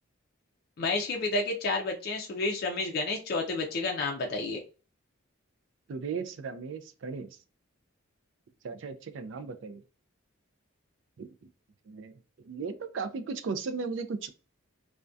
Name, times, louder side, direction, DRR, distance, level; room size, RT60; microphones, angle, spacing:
voice 1, 0.8-4.6, left 3 dB, 45° left, 1 dB, 0.4 m, -30 dB
voice 2, 5.9-7.3 8.6-9.8 11.2-11.3 11.9-12.2 12.4-14.3, right 5 dB, 60° right, 9 dB, 0.3 m, -36 dB
2.3 x 2.1 x 2.5 m, 0.34 s
head